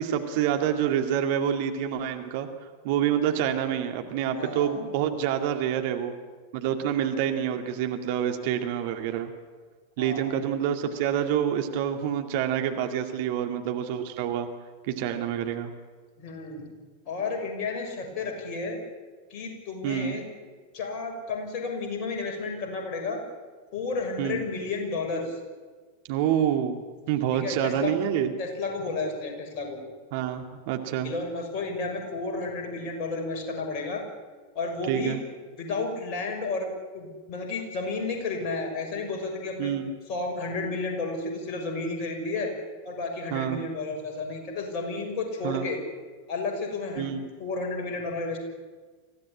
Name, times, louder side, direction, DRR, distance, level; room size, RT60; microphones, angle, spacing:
voice 1, 0.0-2.5 2.8-6.1 6.5-9.3 10.0-14.5 14.9-15.7 19.8-20.1 24.2-24.4 26.1-26.8 27.1-28.3 30.1-31.1 34.9-35.2 39.6-39.9 43.3-43.6 45.4-45.7 47.0-47.2, right 9 dB, 50° right, 5 dB, 2.2 m, -27 dB
voice 2, 4.3-4.7 10.0-10.3 16.2-16.7 17.1-18.8 19.3-20.2 20.7-23.2 23.7-25.4 27.3-27.9 28.4-29.8 31.0-34.0 34.5-35.2 35.6-39.7 40.1-42.5 42.8-45.8 46.3-47.1 47.4-48.4, left 3 dB, 40° left, 2 dB, 6.4 m, -32 dB
25.0 x 16.0 x 10.0 m, 1.4 s
figure-of-eight pair, 90°, 0 cm